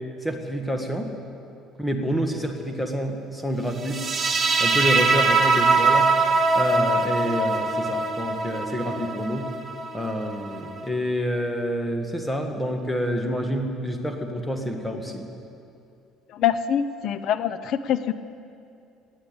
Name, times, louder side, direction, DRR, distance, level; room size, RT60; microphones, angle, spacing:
voice 1, 0.2-1.1 1.8-4.0 4.6-6.1 6.5-9.5 9.9-15.3, equal, 5° left, 4 dB, 1.6 m, -28 dB
sound 1, 3.8-10.9, right 3 dB, 25° right, 1.3 m, -22 dB
voice 2, 16.3-18.1, left 9 dB, 55° left, 12 dB, 0.7 m, -24 dB
19.0 x 8.4 x 8.8 m, 2.5 s
cardioid pair, 135°, 0 cm